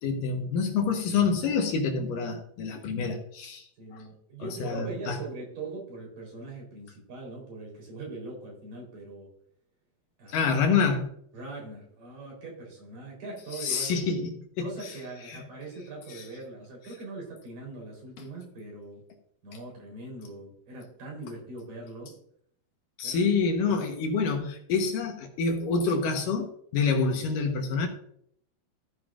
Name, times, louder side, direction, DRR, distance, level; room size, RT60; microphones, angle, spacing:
voice 1, 0.0-3.7 3.9-4.0 4.4-5.2 10.3-11.1 13.6-14.3 14.6-14.7 15.3-15.4 16.1-16.2 23.0-27.9, left 5 dB, 65° left, 4 dB, 2.3 m, -27 dB
voice 2, 3.8-9.3 10.2-10.5 11.3-14.3 14.6-19.0 19.4-22.2 23.0-23.3, right 2 dB, 55° right, -1 dB, 5.2 m, -41 dB
14.5 x 9.4 x 2.5 m, 0.66 s
omnidirectional pair, 4.8 m